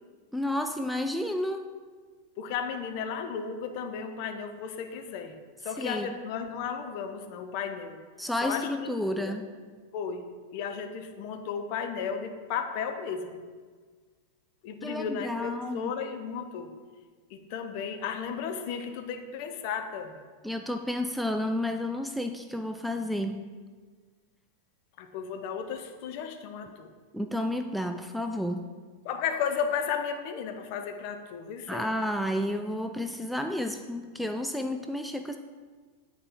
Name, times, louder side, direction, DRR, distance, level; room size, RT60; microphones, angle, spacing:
voice 1, 0.3-1.7 5.8-6.1 8.2-9.5 14.8-15.9 20.4-23.4 27.1-28.7 31.7-35.4, left 1 dB, ahead, 6 dB, 0.3 m, -31 dB
voice 2, 2.4-5.3 5.6-8.0 8.4-9.3 9.9-10.2 10.5-13.4 14.6-16.7 17.3-20.2 25.0-26.9 29.0-31.9, left 7 dB, 45° left, 6 dB, 0.6 m, -34 dB
9.2 x 4.3 x 3.6 m, 1.5 s
figure-of-eight pair, 90°, 0 cm